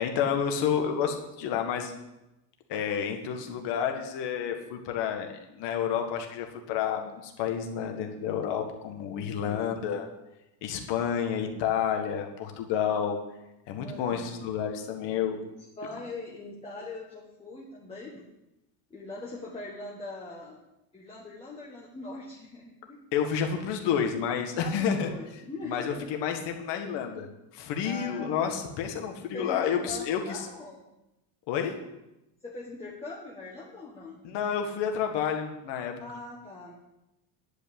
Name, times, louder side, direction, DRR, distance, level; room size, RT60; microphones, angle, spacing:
voice 1, 0.0-1.9 2.7-10.1 10.6-13.2 13.7-15.4 23.1-25.1 25.7-27.3 27.5-30.4 31.5-31.7 34.2-35.9, left 8 dB, 55° left, 4 dB, 1.8 m, -30 dB
voice 2, 9.2-9.7 13.8-14.3 15.1-15.2 15.8-18.2 18.9-20.6 20.9-23.0 24.6-26.1 27.8-28.5 29.3-30.9 32.4-34.2 36.0-36.7, left 2 dB, 10° left, -4 dB, 1.5 m, -41 dB
10.5 x 5.6 x 8.6 m, 0.93 s
cardioid pair, 160°, 49 cm